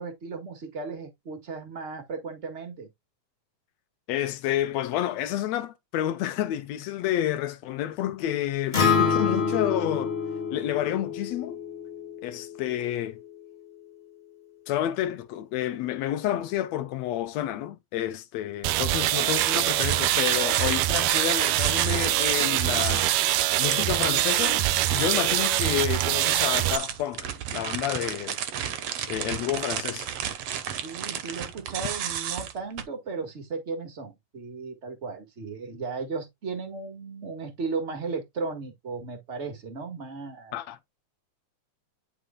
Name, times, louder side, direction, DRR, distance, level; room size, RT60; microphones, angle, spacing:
voice 1, 0.0-2.9 30.8-40.6, right 4 dB, 35° right, 1.2 m, -35 dB
voice 2, 4.1-10.1 10.5-11.6 12.2-13.2 14.7-23.1 23.6-28.4 29.1-30.1 40.5-40.8, left 12 dB, 75° left, 1.6 m, -30 dB
Acoustic guitar, 8.7-13.0, left 5 dB, 30° left, 1.2 m, -27 dB
sound 1, 18.6-26.8, right 16 dB, 80° right, 2.0 m, -24 dB
sound 2, 19.3-32.8, right 9 dB, 65° right, 1.8 m, -31 dB
9.9 x 5.2 x 2.3 m
omnidirectional pair, 3.7 m